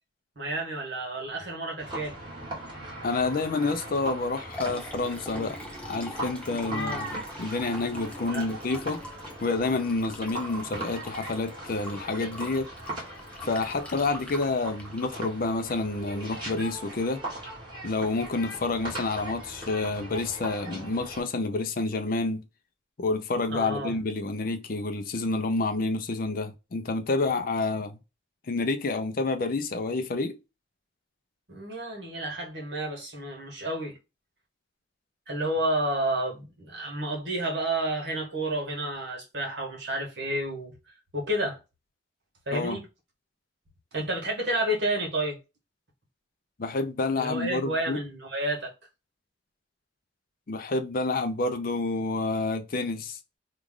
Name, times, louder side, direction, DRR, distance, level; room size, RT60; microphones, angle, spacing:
voice 1, 0.3-2.1 6.6-7.1 8.2-8.5 23.5-23.9 31.5-34.0 35.3-40.7 41.1-41.6 42.5-42.8 43.9-45.4 47.1-48.7, right 1 dB, 65° right, 1.5 m, -30 dB
sound 1, 1.8-21.2, right 1 dB, 25° right, 1.7 m, -40 dB
voice 2, 3.0-5.6 5.8-9.0 9.4-12.7 13.4-17.2 17.8-22.4 23.0-28.0 28.5-30.4 42.5-42.8 46.6-48.0 50.5-53.2, left 3 dB, 50° left, 0.5 m, -29 dB
Liquid, 4.2-16.1, equal, 5° left, 0.7 m, -43 dB
3.1 x 2.4 x 3.6 m
head